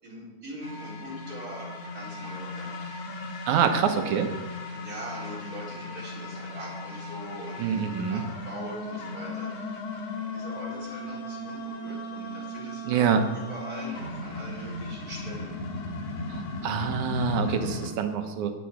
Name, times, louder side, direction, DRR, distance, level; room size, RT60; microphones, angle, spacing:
voice 1, 0.0-3.5 4.7-9.8 10.2-13.1 13.3-15.6, equal, 25° right, -6 dB, 4.9 m, -42 dB
sound 1, 0.6-17.9, left 2 dB, 60° left, 2.7 m, -37 dB
voice 2, 3.5-4.3 7.6-8.2 12.9-13.2 16.3-18.5, right 7 dB, 75° right, 6 dB, 2.5 m, -26 dB
20.0 x 7.3 x 4.9 m, 1.2 s
omnidirectional pair, 3.6 m